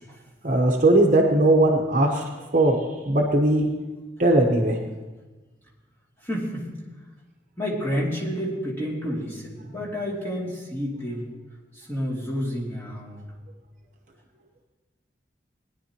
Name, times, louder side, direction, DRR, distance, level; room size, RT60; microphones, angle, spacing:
voice 1, 0.4-2.2 2.5-2.8 3.0-3.7 4.2-4.8, right 1 dB, 40° right, 2 dB, 1.1 m, -19 dB
voice 2, 6.2-6.7 7.6-11.3 11.8-13.2, equal, 10° left, -6 dB, 2.6 m, -29 dB
19.5 x 10.5 x 3.0 m, 1.2 s
head